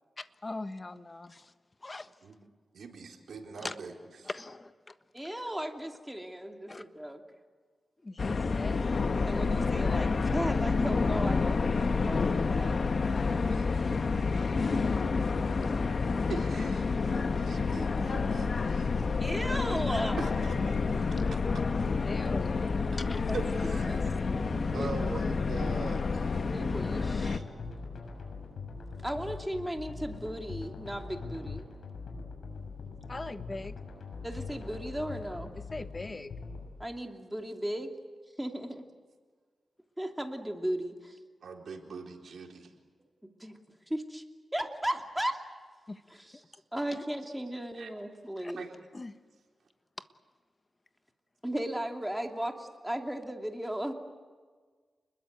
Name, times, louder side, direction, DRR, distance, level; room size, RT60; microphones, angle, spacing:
voice 1, 0.2-1.5 1.8-2.1 3.6-3.7 4.2-4.9 6.7-6.8 8.0-8.9 22.0-23.3 33.1-33.8 35.7-36.3 45.9-46.0 48.4-48.5 48.9-49.1, left 2 dB, 30° left, 10 dB, 1.3 m, -41 dB
voice 2, 2.7-4.3 13.1-14.5 16.3-18.9 19.9-21.0 21.3-21.4 23.3-26.3 27.0-27.4 41.4-42.7 47.7-47.9 48.5-48.7, right 4 dB, 80° right, 1 dB, 4.1 m, -43 dB
voice 3, 5.1-7.2 9.1-12.8 14.8-15.0 19.2-20.2 23.3-23.4 23.9-25.4 26.4-27.3 29.0-31.6 34.2-35.5 36.8-37.9 38.4-38.8 40.0-41.2 43.4-43.6 43.9-44.2 44.5-45.5 46.1-46.4 46.7-48.6 51.4-53.9, right 1 dB, 5° right, 3 dB, 2.8 m, -36 dB
sound 1, 8.2-27.4, left 4 dB, 55° left, 1.3 m, -29 dB
sound 2, 17.2-36.7, left 4 dB, 75° left, 6.6 m, -42 dB
30.0 x 21.5 x 8.2 m, 1.5 s
cardioid pair, 85°, 0 cm